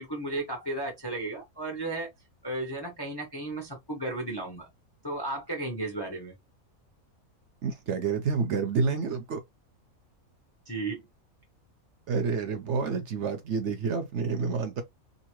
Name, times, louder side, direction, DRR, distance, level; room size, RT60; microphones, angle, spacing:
voice 1, 0.0-2.1 2.4-4.7 5.0-6.3 10.7-11.0, right 2 dB, 25° left, 0.5 m, -34 dB
voice 2, 7.6-9.4 12.1-14.8, right 5 dB, 60° right, 0.9 m, -29 dB
2.8 x 2.6 x 3.0 m
omnidirectional pair, 1.5 m